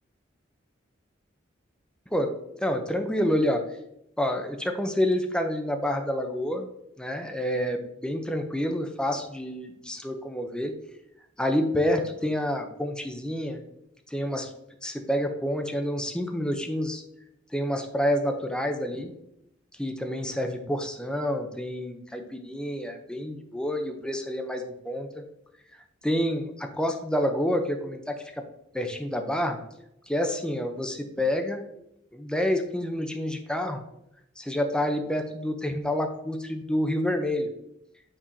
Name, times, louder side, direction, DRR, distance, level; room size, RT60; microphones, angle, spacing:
voice 1, 2.1-3.6 4.2-6.7 7.0-10.7 11.4-13.6 14.1-14.5 14.8-17.0 17.5-19.1 19.8-25.2 26.0-28.2 28.7-29.6 30.1-31.6 32.1-33.8 34.4-37.5, left 1 dB, 5° left, 5 dB, 0.6 m, -28 dB
8.6 x 4.8 x 2.7 m, 0.81 s
head